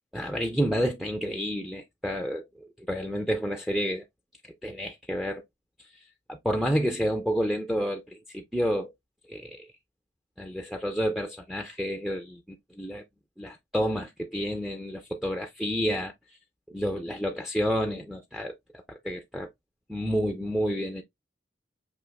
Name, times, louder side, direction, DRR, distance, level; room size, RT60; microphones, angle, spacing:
voice 1, 0.1-4.0 4.4-5.4 6.3-8.9 9.3-9.7 10.4-13.0 13.4-16.1 16.7-18.5 18.9-19.5 19.9-21.0, equal, ahead, 0.3 m, -30 dB
5.6 x 2.7 x 2.2 m
head